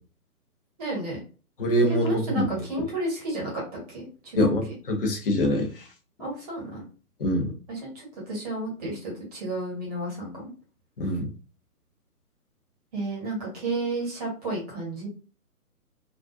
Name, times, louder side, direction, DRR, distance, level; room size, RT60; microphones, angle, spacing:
voice 1, 0.8-1.2 2.0-4.5 6.2-6.8 7.7-10.5 12.9-15.1, right 2 dB, 25° right, -3 dB, 1.0 m, -32 dB
voice 2, 1.6-2.5 4.4-4.6 4.9-5.8 7.2-7.5 11.0-11.3, equal, 40° left, 2 dB, 0.5 m, -24 dB
2.4 x 2.2 x 2.4 m, 0.36 s
figure-of-eight pair, 135°, 46 cm